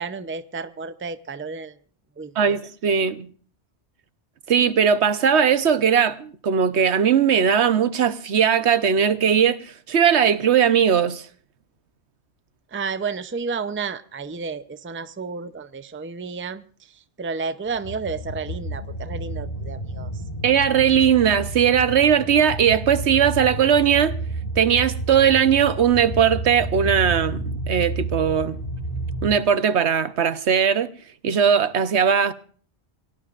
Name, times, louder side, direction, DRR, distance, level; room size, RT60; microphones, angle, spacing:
voice 1, 0.0-1.8 2.2-2.6 12.7-20.1, right 5 dB, 15° right, 0.5 m, -31 dB
voice 2, 2.4-3.3 4.5-11.2 20.4-24.1 24.6-28.6 29.2-30.9 31.2-32.3, right 8 dB, 75° right, 1.2 m, -19 dB
sound 1, 17.7-29.4, right 2 dB, 35° left, 1.5 m, -31 dB
27.5 x 18.0 x 2.5 m
omnidirectional pair, 1.1 m